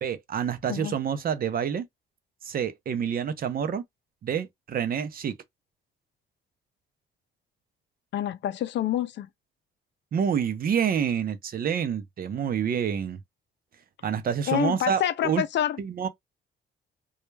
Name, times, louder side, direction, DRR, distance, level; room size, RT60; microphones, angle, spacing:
voice 1, 0.0-1.9 2.4-3.8 4.2-5.3 10.1-13.2 14.0-15.4 15.8-16.1, right 7 dB, 50° right, 0.6 m, -27 dB
voice 2, 8.1-9.3 14.5-15.8, left 11 dB, 65° left, 0.5 m, -27 dB
2.3 x 2.1 x 3.1 m
cardioid pair, 90°, 20 cm